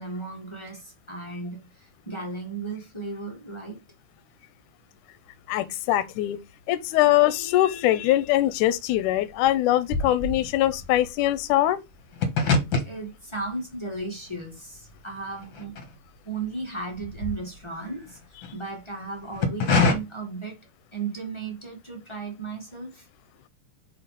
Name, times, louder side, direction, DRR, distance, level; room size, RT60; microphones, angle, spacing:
voice 1, 0.0-3.8 12.8-15.8 16.2-20.6 20.9-23.1, right 3 dB, 25° left, 0.6 m, -35 dB
voice 2, 5.5-6.4 6.7-11.8, left 14 dB, 80° left, 2.0 m, -22 dB
sound 1, 7.1-7.9 8.1-16.5 16.8-18.5 19.1-19.9, left 3 dB, 45° left, 1.8 m, -28 dB
6.4 x 4.2 x 4.1 m
omnidirectional pair, 3.9 m